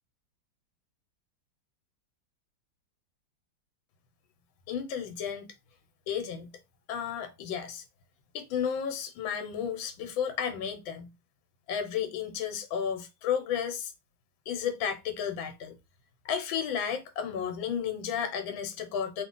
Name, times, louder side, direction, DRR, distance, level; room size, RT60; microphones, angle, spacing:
voice 1, 4.7-5.5 6.1-6.5 6.9-7.8 8.3-11.1 11.7-13.9 14.5-15.7 16.2-19.2, left 8 dB, 85° left, 1.5 m, -32 dB
3.1 x 2.5 x 3.7 m
omnidirectional pair, 2.1 m